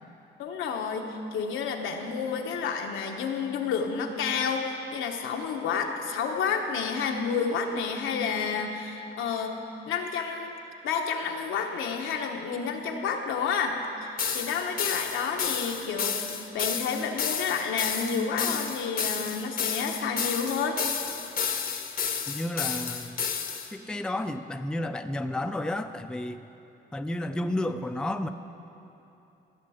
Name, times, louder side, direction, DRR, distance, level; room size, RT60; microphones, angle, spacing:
voice 1, 0.4-9.6 9.9-10.5 10.8-16.2 16.5-20.8, left 5 dB, 85° left, 3 dB, 1.0 m, -30 dB
sound 1, 14.2-23.7, left 7 dB, 45° left, 0.8 m, -31 dB
voice 2, 22.3-23.2 23.7-26.4 26.9-28.3, left 1 dB, 5° left, 8 dB, 0.4 m, -31 dB
15.5 x 6.8 x 4.9 m, 2.9 s
cardioid pair, 90°, 20 cm